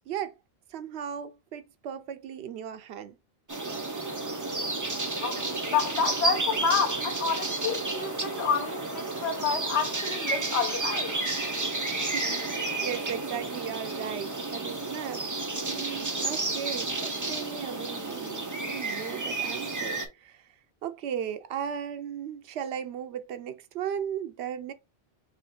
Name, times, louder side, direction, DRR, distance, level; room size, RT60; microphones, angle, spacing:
voice 1, 0.7-3.2 12.0-15.2 15.6-20.5 20.8-24.7, right 9 dB, 80° right, 0.8 m, -36 dB
sound 1, 3.5-20.1, right 3 dB, 20° right, 0.7 m, -31 dB
voice 2, 5.2-11.1, left 6 dB, 90° left, 1.1 m, -29 dB
4.0 x 2.7 x 4.2 m
omnidirectional pair, 1.1 m